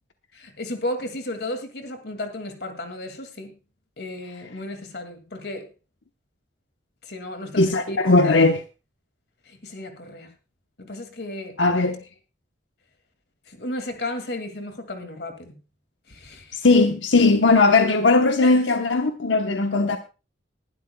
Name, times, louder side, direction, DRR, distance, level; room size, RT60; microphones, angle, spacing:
voice 1, 0.3-3.5 4.0-5.7 7.0-8.0 8.2-8.5 9.5-10.3 10.8-11.6 13.5-15.6 16.1-16.6 18.4-18.6, left 1 dB, 60° left, 2.3 m, -34 dB
voice 2, 7.6-8.6 11.6-12.0 16.5-20.0, left 3 dB, 90° left, 1.0 m, -18 dB
20.0 x 12.0 x 2.3 m
head